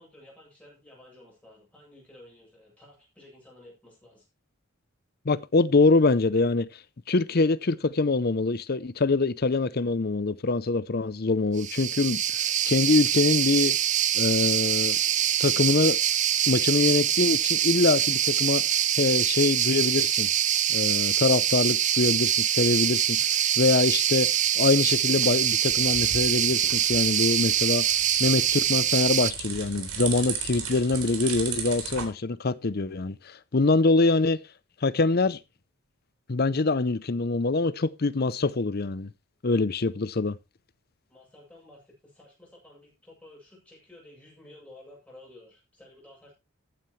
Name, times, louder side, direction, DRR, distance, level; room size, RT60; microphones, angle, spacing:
voice 1, 0.0-4.2 41.1-46.3, left 1 dB, 5° left, 7.9 m, -52 dB
voice 2, 5.3-6.7 7.1-13.8 14.1-15.0 15.4-16.0 16.5-18.6 19.0-20.3 20.7-23.3 23.6-24.3 24.5-27.9 28.2-34.4 34.8-35.4 36.3-39.1 39.4-40.4, left 3 dB, 45° left, 0.6 m, -24 dB
sound 1, 11.6-29.3, right 10 dB, 35° right, 0.5 m, -24 dB
sound 2, 25.4-32.1, right 6 dB, 85° right, 3.7 m, -36 dB
14.5 x 9.3 x 3.2 m
head